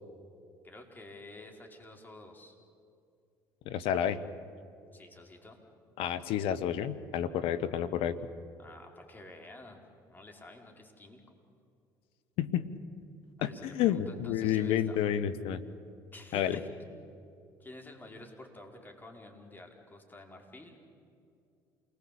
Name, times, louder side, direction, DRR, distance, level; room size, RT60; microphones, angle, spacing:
voice 1, 0.6-2.6 4.9-5.6 8.6-9.8 10.1-11.4 13.4-15.0 16.1-16.7 17.6-20.9, left 2 dB, 20° left, 2 dB, 5.2 m, -50 dB
voice 2, 3.6-4.2 6.0-8.2 12.4-12.7 13.4-15.6 16.3-16.6, left 10 dB, 70° left, 16 dB, 1.4 m, -30 dB
28.5 x 20.5 x 8.8 m, 2.5 s
hypercardioid pair, 65°, 10 cm